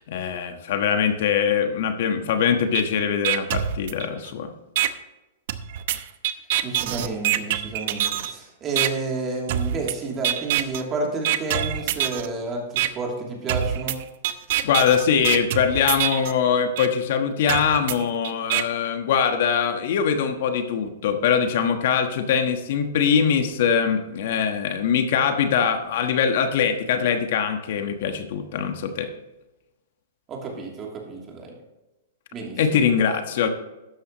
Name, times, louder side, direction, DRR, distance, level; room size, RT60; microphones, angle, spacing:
voice 1, 0.0-4.5 14.6-29.1 32.6-33.5, left 7 dB, 60° left, 7 dB, 1.3 m, -22 dB
sound 1, 2.7-2.8 3.2-4.3 4.8-4.9 5.5-8.3 8.8-8.9 9.5-9.9 10.2-10.8 11.2-12.3 12.8-12.9 13.5-16.3 16.8-16.9 17.5-18.6, right 12 dB, 55° right, 0.8 m, -25 dB
voice 2, 6.6-14.0 30.3-31.6 32.3-32.8, right 3 dB, 25° right, 0 dB, 2.8 m, -30 dB
13.0 x 9.5 x 3.0 m, 1.0 s
hypercardioid pair, 150°, 0 cm